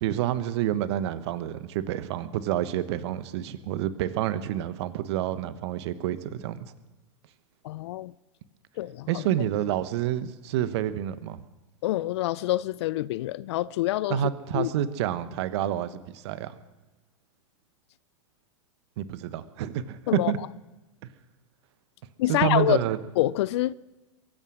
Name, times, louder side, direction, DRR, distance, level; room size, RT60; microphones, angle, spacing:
voice 1, 0.0-6.6 9.1-11.4 14.1-16.5 19.0-20.4 22.3-23.0, right 11 dB, 55° right, 1.2 m, -28 dB
voice 2, 7.6-8.1 8.8-9.2 11.8-14.2 14.5-14.7 20.1-20.3 22.2-22.8 23.2-23.7, left 15 dB, 55° left, 0.5 m, -26 dB
23.0 x 8.9 x 6.3 m
hypercardioid pair, 110°, 17 cm